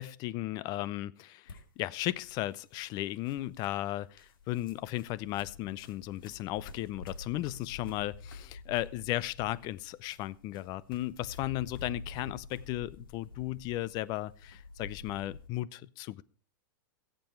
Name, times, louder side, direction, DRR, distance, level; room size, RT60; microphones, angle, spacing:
voice 1, 0.0-16.2, left 15 dB, 35° left, 0.5 m, -35 dB
sound 1, 1.4-15.5, left 4 dB, 85° left, 2.3 m, -48 dB
15.5 x 7.6 x 4.5 m
hypercardioid pair, 135°, 11 cm